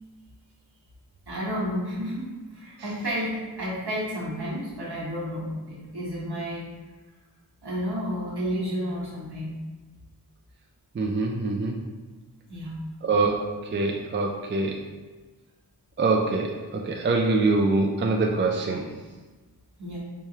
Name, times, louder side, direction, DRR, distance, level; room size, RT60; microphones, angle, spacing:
voice 1, 1.3-6.7 7.6-9.5 12.5-12.7 19.8-20.0, equal, 70° right, -6 dB, 1.2 m, -31 dB
voice 2, 11.0-11.8 13.0-13.4 13.7-14.8 16.0-18.8, right 3 dB, 30° right, 1 dB, 0.4 m, -24 dB
4.7 x 2.2 x 2.8 m, 1.3 s
wide cardioid pair, 60°, 40 cm